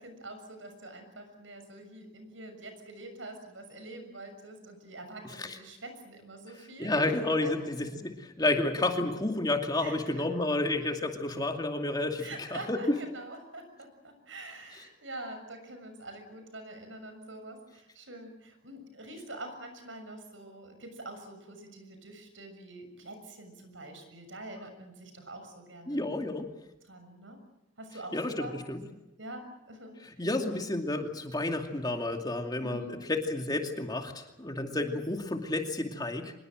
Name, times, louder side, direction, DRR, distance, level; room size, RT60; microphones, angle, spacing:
voice 1, 0.0-7.5 9.8-10.2 12.2-26.1 26.8-27.4 27.8-28.6 28.9-30.0 32.6-33.0, right 2 dB, 85° right, 7 dB, 6.8 m, -45 dB
voice 2, 6.8-12.8 25.9-26.5 28.1-28.8 30.2-32.8 33.1-36.4, left 2 dB, 20° left, 4 dB, 2.5 m, -31 dB
25.0 x 22.0 x 7.8 m, 0.91 s
head